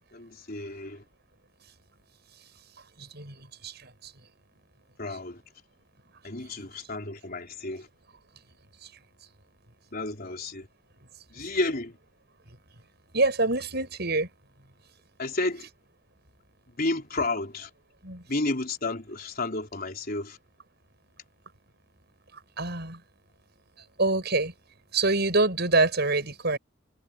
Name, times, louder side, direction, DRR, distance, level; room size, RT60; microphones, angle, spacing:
voice 1, 0.1-1.0 5.0-5.4 6.2-7.9 9.9-10.7 11.3-11.9 15.2-15.7 16.8-17.7 18.3-20.4, left 2 dB, 45° left, 4.1 m, -31 dB
voice 2, 3.0-4.1 8.8-8.9 13.1-14.3 18.0-18.2 22.6-23.0 24.0-24.5 24.9-26.6, right 2 dB, 55° right, 7.7 m, -26 dB
head